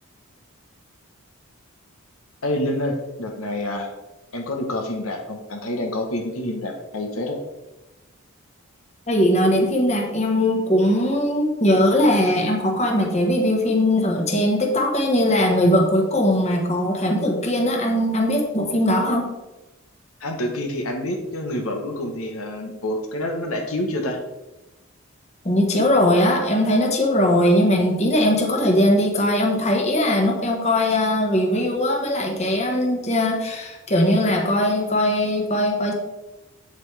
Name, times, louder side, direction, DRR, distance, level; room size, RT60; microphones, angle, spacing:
voice 1, 2.4-3.9 4.3-7.4 20.2-24.2, left 1 dB, 75° left, 2 dB, 1.2 m, -27 dB
voice 2, 9.1-19.3 25.4-35.9, left 1 dB, 30° left, 1 dB, 1.4 m, -20 dB
8.4 x 8.0 x 3.4 m, 1.0 s
head